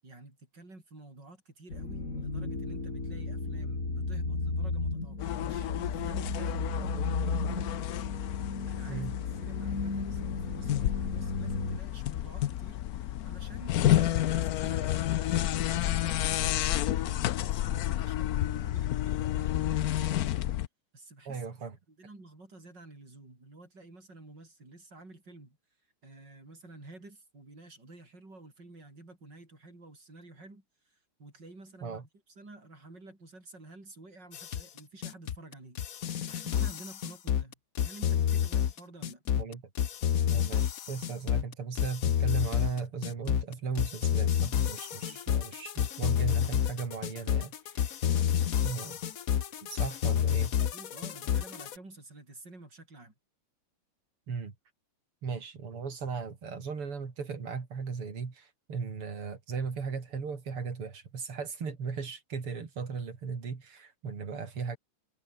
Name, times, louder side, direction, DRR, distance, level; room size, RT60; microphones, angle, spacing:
voice 1, 0.0-8.1 8.7-9.1 9.4-20.3 20.9-21.5 21.9-25.6 26.0-32.0 32.3-35.8 36.3-39.2 45.0-45.2 50.7-53.1, right 2 dB, 50° right, 8.2 m, -51 dB
sound 1, 1.7-11.8, left 3 dB, 35° left, 4.6 m, -35 dB
sound 2, 5.2-20.7, left 13 dB, 80° left, 0.8 m, -30 dB
voice 2, 21.3-21.8 31.8-32.1 39.4-39.6 40.3-48.0 48.6-49.0 49.6-50.5 54.3-54.5 55.2-64.8, right 5 dB, 80° right, 4.2 m, -37 dB
sound 3, 34.3-51.8, left 9 dB, 50° left, 1.1 m, -29 dB
omnidirectional pair, 2.4 m